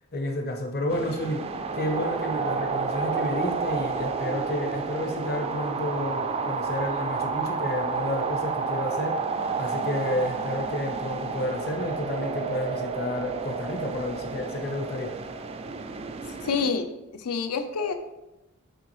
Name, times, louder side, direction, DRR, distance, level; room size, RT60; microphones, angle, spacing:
voice 1, 0.1-9.2 9.6-15.2, left 1 dB, 45° left, 3 dB, 0.8 m, -31 dB
sound 1, 0.9-16.7, right 4 dB, 25° right, 0.3 m, -30 dB
voice 2, 16.4-18.0, left 5 dB, 85° left, 7 dB, 0.6 m, -28 dB
6.8 x 4.6 x 3.1 m, 0.97 s
head